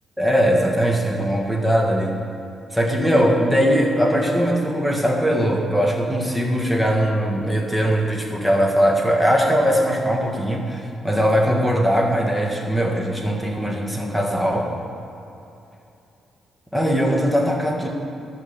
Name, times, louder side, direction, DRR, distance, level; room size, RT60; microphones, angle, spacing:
voice 1, 0.2-2.2 2.7-14.7 16.7-17.9, equal, 5° right, 0 dB, 1.5 m, -20 dB
12.5 x 5.6 x 7.2 m, 2.7 s
cardioid pair, 110°, 0 cm